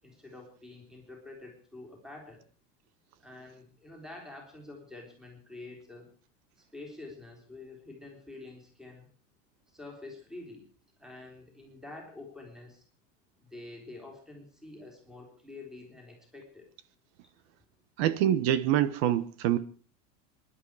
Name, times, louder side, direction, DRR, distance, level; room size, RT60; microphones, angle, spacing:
voice 1, 0.0-2.4 3.2-6.1 6.7-9.1 9.7-10.6 11.0-12.8 13.4-16.7, left 2 dB, ahead, 3.8 m, -47 dB
voice 2, 18.0-19.6, right 11 dB, 50° right, 1.2 m, -25 dB
25.0 x 11.5 x 4.8 m
supercardioid pair, 170°, 38 cm